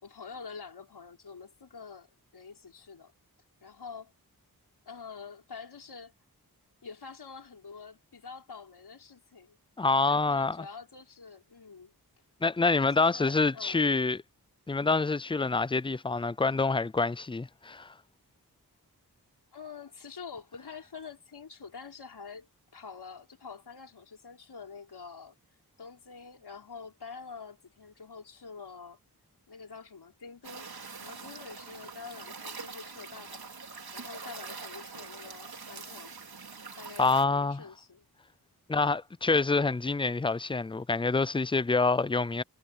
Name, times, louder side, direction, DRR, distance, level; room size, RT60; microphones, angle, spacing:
voice 1, 0.0-3.1 3.6-4.1 4.9-6.1 6.8-9.6 10.1-11.9 12.9-13.8 19.5-25.4 25.8-29.0 29.5-30.7 31.0-33.4 33.9-36.2 36.8-38.1, left 5 dB, 85° left, 5.2 m, -46 dB
voice 2, 9.8-10.7 12.4-14.2 14.7-17.9 37.0-37.6 38.7-42.4, left 3 dB, 15° left, 0.4 m, -26 dB
sound 1, 30.4-37.2, right 5 dB, 70° right, 4.4 m, -44 dB
wide cardioid pair, 95°, 38 cm